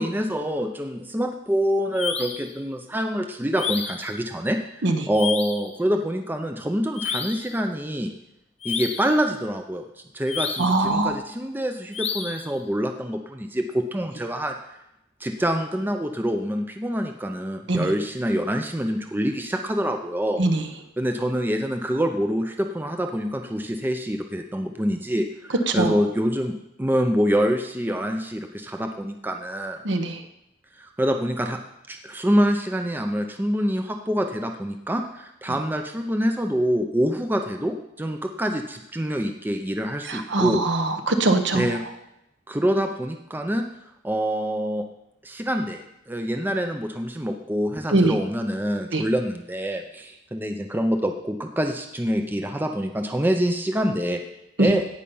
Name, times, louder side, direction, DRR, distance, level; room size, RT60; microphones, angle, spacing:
voice 1, 0.0-8.1 8.6-9.8 10.1-14.8 15.2-20.4 21.0-29.8 30.8-31.6 31.9-40.6 41.5-41.8 42.5-43.6 44.0-44.8 45.2-54.2 54.6-54.8, equal, 10° right, 5 dB, 0.5 m, -26 dB
sound 1, 1.9-2.5 3.5-4.1 5.1-5.7 6.9-7.5 8.6-9.2 10.3-10.8 11.9-12.5, left 6 dB, 30° left, 0.9 m, -30 dB
voice 2, 10.6-11.2 17.7-17.9 20.4-20.6 25.7-26.0 29.8-30.2 40.1-41.7 47.9-48.1 48.9-49.0 54.6-54.7, right 2 dB, 60° right, 6 dB, 1.1 m, -22 dB
17.0 x 5.7 x 5.5 m, 0.85 s
head